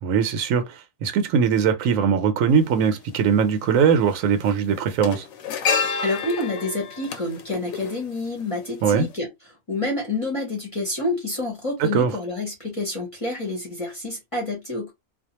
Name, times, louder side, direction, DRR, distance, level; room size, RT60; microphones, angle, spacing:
voice 1, 0.0-5.2 8.8-9.1 11.9-12.1, right 6 dB, 80° right, 0.9 m, -21 dB
sound 1, 2.5-2.6 3.8-4.1 4.4-8.7 9.0-9.1, left 6 dB, 80° left, 1.0 m, -29 dB
voice 2, 6.0-9.3 9.7-14.9, left 2 dB, 30° left, 0.7 m, -28 dB
2.4 x 2.1 x 2.9 m
omnidirectional pair, 1.4 m